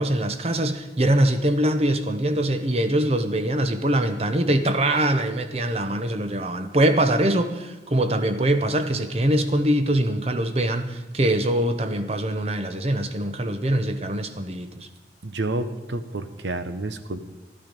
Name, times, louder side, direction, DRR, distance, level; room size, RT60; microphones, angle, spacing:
voice 1, 0.0-14.9, right 1 dB, 35° right, 9 dB, 0.8 m, -23 dB
voice 2, 15.2-17.2, right 2 dB, 90° right, 10 dB, 0.9 m, -29 dB
12.0 x 11.5 x 5.4 m, 1.1 s
head